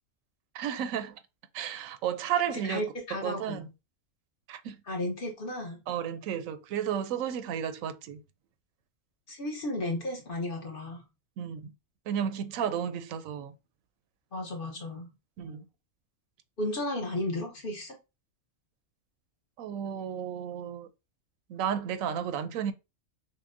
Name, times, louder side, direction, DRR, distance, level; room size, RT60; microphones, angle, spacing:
voice 1, 0.5-1.2 1.5-3.7 4.5-4.8 5.9-8.2 11.4-11.7 12.1-13.5 15.4-15.6 19.6-20.9 21.5-22.7, right 9 dB, 85° right, 1.0 m, -33 dB
voice 2, 2.7-3.6 4.9-5.8 9.3-11.0 14.3-15.1 16.6-18.0, left 1 dB, 45° left, 1.0 m, -34 dB
5.7 x 2.1 x 2.5 m
omnidirectional pair, 1.4 m